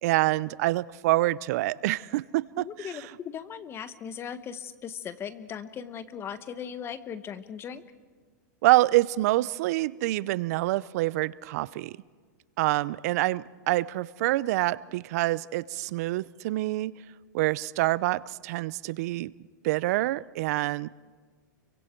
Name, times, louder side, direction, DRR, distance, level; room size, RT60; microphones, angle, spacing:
voice 1, 0.0-3.1 8.6-12.0 12.6-16.9 17.3-19.3 19.6-20.9, right 18 dB, 55° right, 20 dB, 0.6 m, -26 dB
voice 2, 2.6-7.8, left 8 dB, 25° left, 13 dB, 1.1 m, -38 dB
29.5 x 23.5 x 4.5 m, 1.5 s
hypercardioid pair, 135°, 10 cm